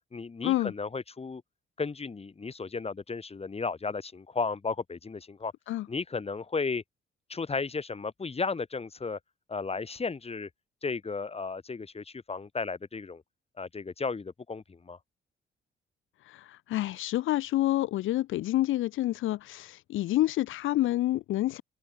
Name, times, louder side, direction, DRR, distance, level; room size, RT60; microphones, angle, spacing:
voice 1, 0.1-1.4 1.8-5.5 5.9-6.8 7.3-9.2 9.5-10.5 10.8-13.2 13.6-15.0, left 4 dB, 30° left, 5.6 m, -34 dB
voice 2, 16.3-21.6, left 15 dB, 85° left, 1.6 m, -28 dB
open air
cardioid pair, 90°, 20 cm